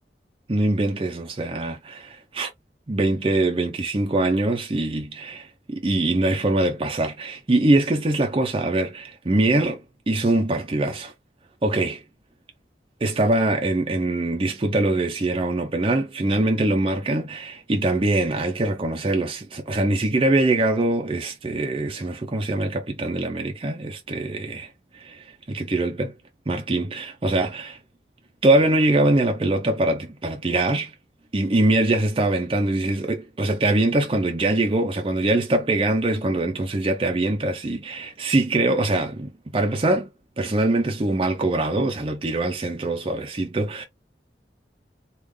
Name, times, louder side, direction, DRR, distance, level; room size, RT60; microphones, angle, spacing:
voice 1, 0.5-2.5 2.9-11.1 11.6-12.0 13.0-26.1 26.5-27.8 28.4-30.9 31.3-40.1 40.4-43.9, right 2 dB, 30° right, 0.5 m, -23 dB
3.5 x 2.4 x 3.1 m
head